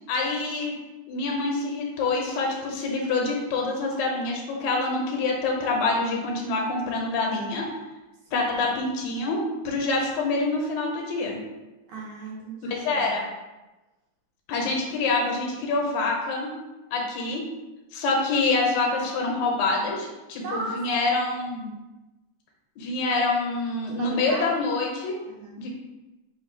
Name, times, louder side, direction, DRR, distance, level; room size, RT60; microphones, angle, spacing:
voice 1, 0.1-0.7 1.1-7.7 8.3-11.4 12.6-13.3 14.5-16.5 16.9-17.4 17.9-21.8 22.8-25.2 25.6-25.7, left 3 dB, 75° left, 0 dB, 1.9 m, -26 dB
voice 2, 11.9-13.2 20.4-20.8 23.9-24.5 25.2-25.5, right 2 dB, 75° right, -4 dB, 2.0 m, -36 dB
4.8 x 2.3 x 4.5 m, 1.1 s
omnidirectional pair, 3.6 m